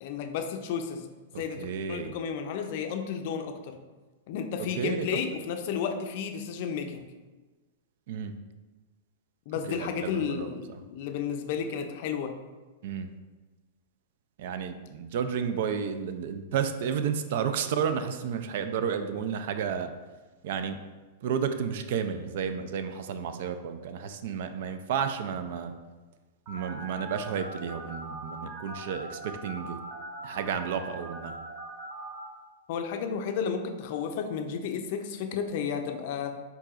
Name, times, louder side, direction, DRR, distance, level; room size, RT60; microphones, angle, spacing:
voice 1, 0.0-1.1 1.4-3.7 4.3-7.1 9.5-12.4 32.7-36.4, left 7 dB, 55° left, 6 dB, 0.4 m, -32 dB
voice 2, 1.3-2.1 4.8-5.1 8.1-8.3 9.7-10.5 12.8-13.1 14.4-19.9 20.4-20.8 21.2-25.7 26.5-29.8 30.2-31.4, right 7 dB, 65° right, 9 dB, 0.3 m, -32 dB
Telephone, 26.5-32.2, right 2 dB, 45° right, 1.1 m, -41 dB
4.6 x 4.0 x 2.4 m, 1.3 s
hypercardioid pair, 130°, 0 cm